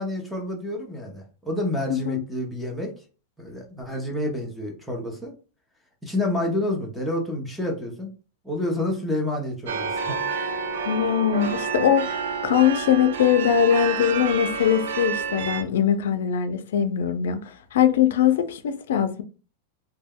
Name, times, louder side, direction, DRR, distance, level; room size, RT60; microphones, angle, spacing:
voice 1, 0.0-2.9 3.4-5.3 6.0-8.1 8.4-10.4, left 1 dB, ahead, 0.6 m, -29 dB
voice 2, 1.9-2.2 10.9-19.2, left 9 dB, 85° left, 0.4 m, -22 dB
sound 1, 9.7-15.6, right 5 dB, 90° right, 0.4 m, -29 dB
2.2 x 2.1 x 3.5 m
supercardioid pair, 175°, 0 cm